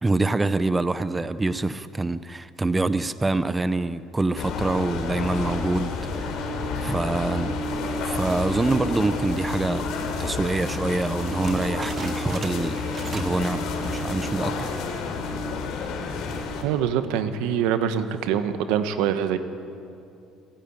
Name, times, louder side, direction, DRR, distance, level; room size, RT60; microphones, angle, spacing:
voice 1, 0.0-7.5 8.0-9.9 10.2-12.9 13.1-14.5, right 2 dB, 15° right, 0.5 m, -26 dB
sound 1, 4.4-16.6, left 3 dB, 70° left, 3.0 m, -29 dB
sound 2, 11.4-13.5 13.7-14.1 14.6-14.7 15.3-15.7, right 5 dB, 35° right, 1.3 m, -40 dB
voice 2, 16.6-19.4, right 9 dB, 90° right, 1.3 m, -24 dB
28.5 x 10.0 x 8.9 m
cardioid pair, 130°, 0 cm